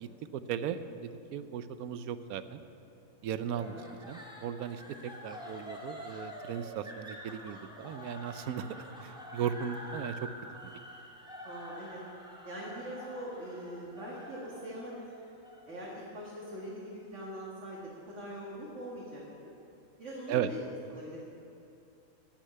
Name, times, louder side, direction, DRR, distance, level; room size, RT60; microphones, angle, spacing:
voice 1, 0.0-2.6 3.2-3.7 4.1-10.3 10.6-10.7 20.3-20.5, right 8 dB, 85° right, 12 dB, 1.1 m, -37 dB
voice 2, 3.5-3.9 11.4-12.0 12.4-14.9 15.7-19.5 20.0-20.6 20.9-21.2, right 1 dB, 55° right, -5 dB, 2.1 m, -42 dB
sound 1, 3.6-16.7, equal, 5° right, 1.7 m, -47 dB
13.0 x 6.6 x 9.5 m, 2.8 s
omnidirectional pair, 1.5 m